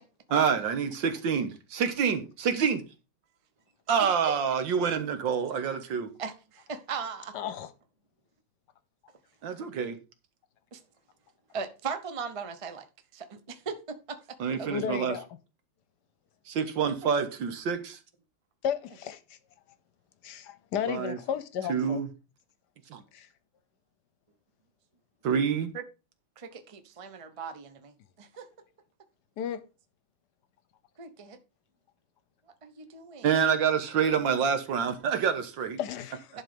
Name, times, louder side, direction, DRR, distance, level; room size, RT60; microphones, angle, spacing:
voice 1, 0.3-2.8 3.9-6.1 9.4-10.0 14.4-15.2 16.5-18.0 20.9-21.2 21.7-22.1 22.9-23.0 25.2-25.7 33.2-35.8, right 7 dB, 70° right, 1.9 m, -27 dB
voice 2, 6.2-7.3 10.7-10.8 11.5-12.8 13.1-14.7 25.7-25.8 26.4-27.9 28.2-28.5 31.0-31.4 32.6-33.3, right 5 dB, 50° right, 0.4 m, -38 dB
voice 3, 7.3-7.7 14.7-15.3 18.6-19.4 20.2-22.0 23.1-23.3 29.4-29.6 35.8-36.3, left 8 dB, 65° left, 1.3 m, -33 dB
11.0 x 4.5 x 5.2 m
omnidirectional pair, 2.2 m